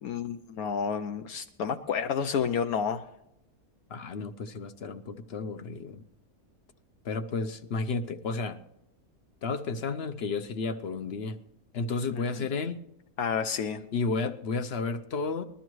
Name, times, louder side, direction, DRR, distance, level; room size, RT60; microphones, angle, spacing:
voice 1, 0.0-3.0 12.1-12.2 13.2-13.8, left 6 dB, 75° left, 7 dB, 1.1 m, -30 dB
voice 2, 3.9-6.1 7.0-8.6 9.4-11.4 11.7-12.8 13.9-15.4, left 4 dB, 55° left, 10 dB, 0.8 m, -32 dB
20.0 x 12.5 x 3.1 m, 0.81 s
omnidirectional pair, 1.6 m